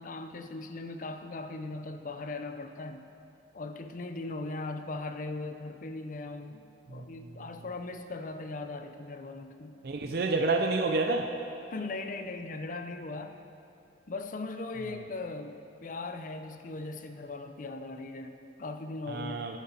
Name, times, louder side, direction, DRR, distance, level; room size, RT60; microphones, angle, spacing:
voice 1, 0.0-3.1 3.5-9.8 11.7-13.4 14.1-19.4, left 3 dB, 45° left, 7 dB, 0.5 m, -39 dB
voice 2, 9.8-11.3 19.1-19.6, right 3 dB, 60° right, 4 dB, 0.5 m, -28 dB
15.0 x 10.0 x 2.9 m, 2.7 s
head